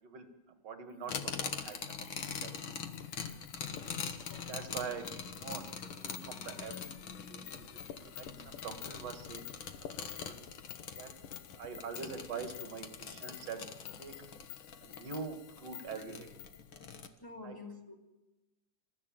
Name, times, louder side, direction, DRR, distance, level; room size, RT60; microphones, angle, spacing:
voice 1, 0.6-2.6 4.5-9.5 9.8-10.4 11.0-11.1 11.5-13.6 14.0-14.1 14.8-16.3 17.4-17.6, right 5 dB, 55° right, 6 dB, 2.7 m, -44 dB
sound 1, 1.0-16.7, left 14 dB, 70° left, 2.1 m, -53 dB
sound 2, 1.1-17.1, left 6 dB, 55° left, 1.5 m, -43 dB
sound 3, 2.2-12.9, left 7 dB, 85° left, 3.0 m, -54 dB
voice 2, 3.6-4.8 17.2-17.9, left 2 dB, 5° left, 1 dB, 2.6 m, -50 dB
26.5 x 15.0 x 7.7 m, 1.1 s
omnidirectional pair, 3.7 m